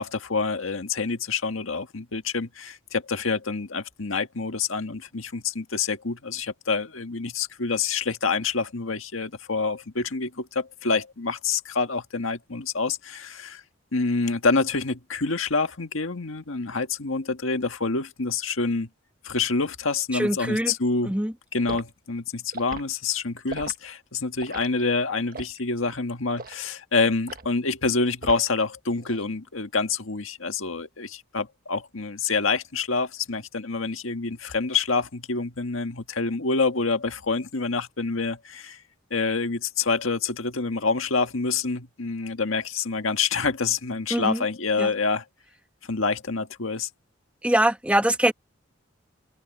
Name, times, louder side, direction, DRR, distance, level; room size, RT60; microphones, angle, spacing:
voice 1, 0.0-13.6 13.9-18.9 19.2-21.2 21.5-38.8 39.1-45.2 45.9-46.9, left 4 dB, 90° left, 1.7 m, -27 dB
voice 2, 20.1-20.7 21.0-21.3 44.1-44.4 44.8-44.9 47.4-48.3, right 1 dB, 5° right, 1.3 m, -23 dB
Liquid, 21.7-21.9 22.5-22.9 23.5-23.8 24.4-24.7 25.3-25.6 26.3-26.6 27.3-27.5 28.2-28.6 29.0-29.3, right 3 dB, 45° right, 1.5 m, -38 dB
open air
head